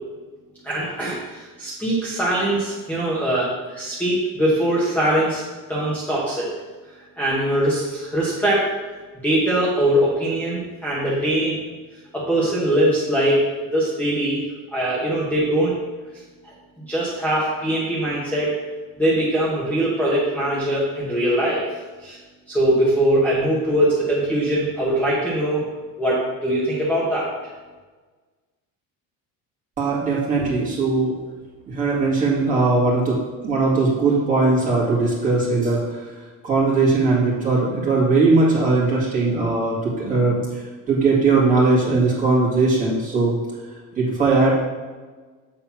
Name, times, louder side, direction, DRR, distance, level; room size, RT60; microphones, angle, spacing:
voice 1, 0.6-5.4 5.7-6.5 7.2-8.7 9.2-11.6 12.1-13.4 13.7-14.4 14.7-15.8 16.8-18.5 19.0-21.7 22.0-22.2 22.5-25.6 26.0-27.3, right 1 dB, 5° left, -8 dB, 1.2 m, -21 dB
voice 2, 29.8-31.2 31.7-33.2 33.4-36.0 36.4-43.4 43.9-44.5, right 3 dB, 20° right, -6 dB, 2.1 m, -19 dB
7.6 x 4.0 x 5.8 m, 1.3 s
cardioid pair, 175°, 36 cm